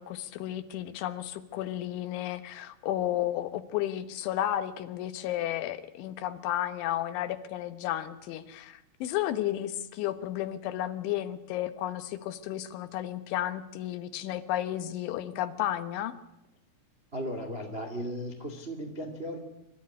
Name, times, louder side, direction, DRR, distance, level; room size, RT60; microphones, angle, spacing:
voice 1, 0.0-16.1, left 12 dB, 75° left, 10 dB, 3.5 m, -33 dB
voice 2, 17.1-19.4, equal, 25° right, 4 dB, 1.2 m, -36 dB
26.5 x 13.5 x 9.8 m, 0.91 s
omnidirectional pair, 5.7 m